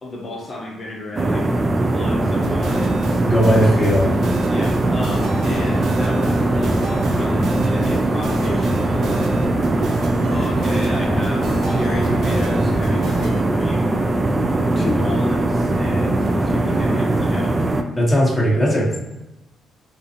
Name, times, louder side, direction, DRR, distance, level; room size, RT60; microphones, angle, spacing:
voice 1, 0.0-3.0 4.5-9.3 10.3-14.0 14.7-17.6, left 1 dB, 40° left, -2 dB, 0.7 m, -32 dB
sound 1, 1.2-17.8, right 2 dB, 25° right, 0.3 m, -20 dB
sound 2, 2.4-13.4, right 1 dB, 65° right, 0.6 m, -31 dB
voice 2, 3.2-4.1 18.0-19.0, equal, 5° left, -4 dB, 1.0 m, -17 dB
Boat Water vehicle, 11.1-13.8, left 3 dB, 70° left, 0.4 m, -34 dB
3.6 x 2.5 x 2.8 m, 0.97 s
cardioid pair, 90°, 0 cm